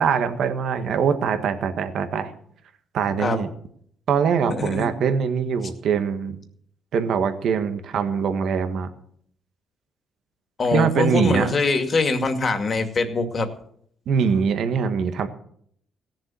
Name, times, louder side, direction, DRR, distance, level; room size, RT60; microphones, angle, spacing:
voice 1, 0.0-2.3 2.9-3.5 4.1-6.4 6.9-8.9 10.7-11.5 14.1-15.3, right 6 dB, 70° right, 8 dB, 1.5 m, -23 dB
voice 2, 4.6-5.0 10.6-13.5, left 3 dB, 40° left, 6 dB, 2.3 m, -23 dB
17.0 x 7.4 x 7.6 m, 0.65 s
cardioid pair, 90°, 0 cm